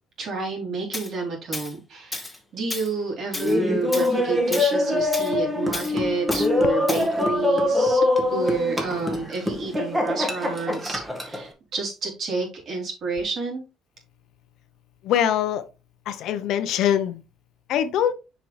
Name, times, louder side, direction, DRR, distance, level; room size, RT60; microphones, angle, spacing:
voice 1, 0.2-8.1 8.3-13.6, right 3 dB, 50° right, 3.7 m, -30 dB
Tools, 0.9-1.1 1.5-1.7 2.1-2.4 2.7-2.9 3.3-3.6 3.9-4.1 4.5-4.7 5.1-5.3 5.7-5.9 6.3-6.5 6.9-7.1, left 2 dB, 10° left, 1.4 m, -33 dB
Laughter, 3.3-11.4, left 2 dB, 15° right, 1.9 m, -23 dB
voice 2, 15.0-15.6 16.1-17.2 17.7-18.1, left 10 dB, 70° left, 0.9 m, -23 dB
7.0 x 5.3 x 3.3 m
cardioid pair, 125°, 0 cm